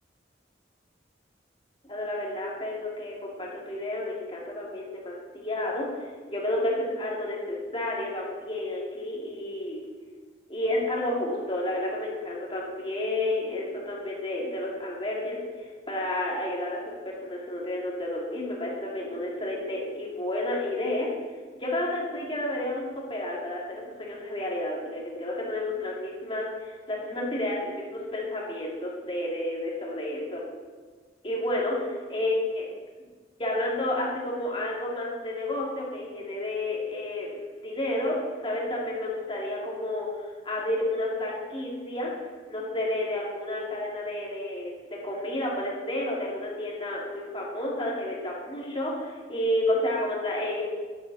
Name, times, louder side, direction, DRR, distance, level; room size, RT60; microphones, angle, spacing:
voice 1, 1.8-9.8 10.5-15.4 15.9-16.8 17.0-21.1 21.5-30.5 31.2-31.8 32.1-32.6 33.4-37.3 37.6-38.1 38.4-42.1 42.5-50.6, left 1 dB, 30° left, -3 dB, 2.7 m, -31 dB
11.5 x 11.0 x 4.2 m, 1.5 s
head